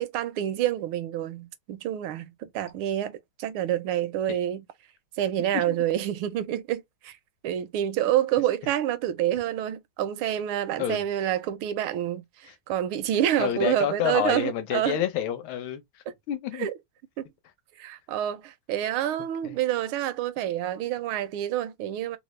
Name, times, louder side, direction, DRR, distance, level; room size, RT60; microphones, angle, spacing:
voice 1, 0.0-4.6 5.2-7.2 7.4-15.0 16.1-16.2 16.6-16.7 17.2-17.3 17.8-22.2, right 11 dB, 85° right, 1.5 m, -28 dB
voice 2, 13.4-15.8 16.3-16.7 19.4-19.6, left 10 dB, 75° left, 1.6 m, -28 dB
3.8 x 2.0 x 3.0 m
omnidirectional pair, 2.3 m